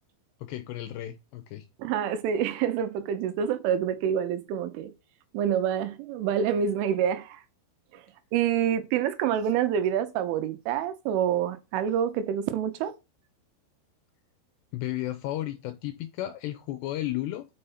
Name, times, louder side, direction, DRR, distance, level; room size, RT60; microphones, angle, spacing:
voice 1, 0.4-1.7 14.7-17.5, left 14 dB, 85° left, 2.5 m, -33 dB
voice 2, 1.8-4.9 5.3-7.4 7.9-8.0 8.3-12.9, right 9 dB, 85° right, 3.4 m, -27 dB
6.5 x 5.6 x 5.6 m
omnidirectional pair, 5.6 m